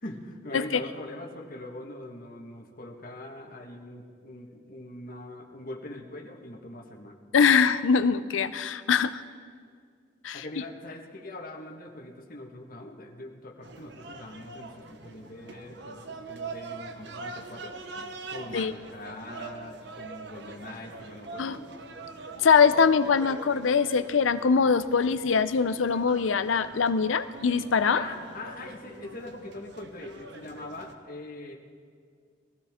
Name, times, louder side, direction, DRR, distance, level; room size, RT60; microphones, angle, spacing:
voice 1, 0.0-7.2 10.3-17.8 18.3-21.7 27.9-31.6, left 1 dB, 50° left, 1 dB, 1.5 m, -42 dB
voice 2, 7.3-9.2 10.2-10.4 18.5-18.7 21.4-21.6 22.4-28.0, left 5 dB, 90° left, 13 dB, 0.6 m, -23 dB
sound 1, 13.6-30.9, right 3 dB, 60° right, 1.0 m, -43 dB
22.0 x 15.0 x 3.7 m, 2.1 s
head